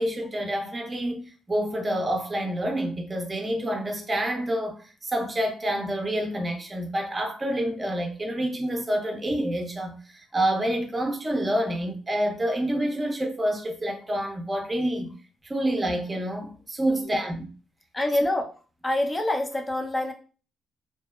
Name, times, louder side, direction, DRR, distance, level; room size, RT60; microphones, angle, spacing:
voice 1, 0.0-15.1 15.4-17.5, right 1 dB, 25° right, 0.6 m, -28 dB
voice 2, 16.9-17.3 17.9-18.5 18.8-20.1, left 1 dB, 20° left, 0.5 m, -26 dB
2.7 x 2.0 x 2.3 m
cardioid pair, 90°, 0 cm